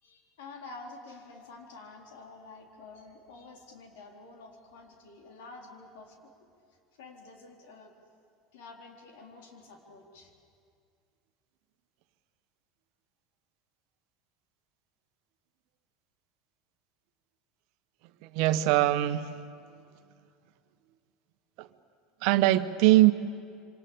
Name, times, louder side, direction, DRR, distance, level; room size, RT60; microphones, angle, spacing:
voice 1, 0.0-6.3 6.7-7.9 8.5-10.3, left 3 dB, 70° left, 2 dB, 3.9 m, -49 dB
voice 2, 18.2-19.4 21.6-21.7 22.2-23.1, right 16 dB, 65° right, 11 dB, 1.1 m, -22 dB
26.5 x 25.0 x 8.6 m, 2.3 s
hypercardioid pair, 75°, 0 cm